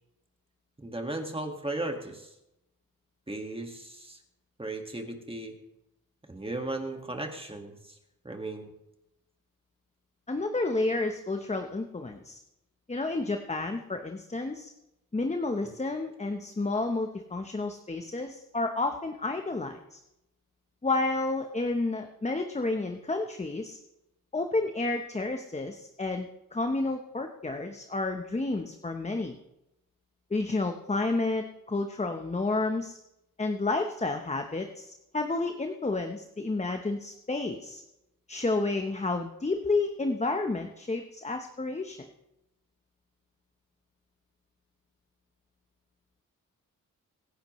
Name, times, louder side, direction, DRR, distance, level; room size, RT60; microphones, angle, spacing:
voice 1, 0.8-2.3 3.3-4.2 4.6-5.5 6.3-8.0 8.2-8.7, right 2 dB, 15° right, 3 dB, 1.8 m, -36 dB
voice 2, 10.3-12.4 12.9-14.7 15.1-20.0 20.8-23.8 24.3-29.4 30.3-33.0 33.4-37.8 38.3-42.1, left 2 dB, 20° left, 5 dB, 0.9 m, -30 dB
24.5 x 10.5 x 3.1 m, 0.88 s
wide cardioid pair, 110°, 34 cm